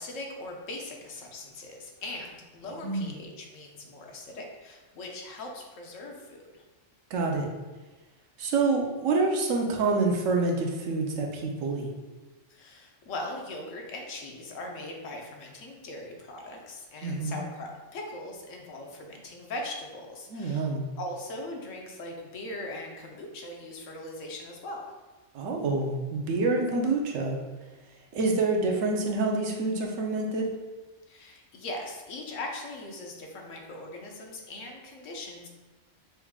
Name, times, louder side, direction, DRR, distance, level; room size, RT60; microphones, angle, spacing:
voice 1, 0.0-6.6 12.5-20.7 21.0-24.8 31.1-35.5, left 1 dB, 80° left, 1 dB, 1.1 m, -40 dB
voice 2, 7.1-7.5 8.4-11.9 17.0-17.4 20.3-20.8 25.3-27.4 28.1-30.5, right 3 dB, 90° right, 1 dB, 1.1 m, -27 dB
5.9 x 2.3 x 3.5 m, 1.2 s
omnidirectional pair, 1.3 m